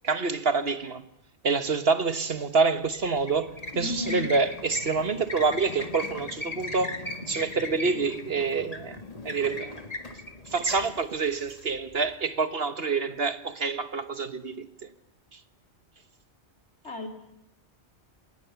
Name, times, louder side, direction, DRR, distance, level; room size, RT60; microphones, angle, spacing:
voice 1, 0.0-1.0 1.4-7.0 7.3-9.7 10.5-14.9 15.3-15.4, right 4 dB, 55° right, 1.5 m, -27 dB
sound 1, 2.8-12.1, left 2 dB, 30° left, 1.8 m, -38 dB
voice 2, 3.7-4.3 16.8-17.1, left 3 dB, 70° left, 3.5 m, -33 dB
28.0 x 19.5 x 7.0 m
omnidirectional pair, 1.2 m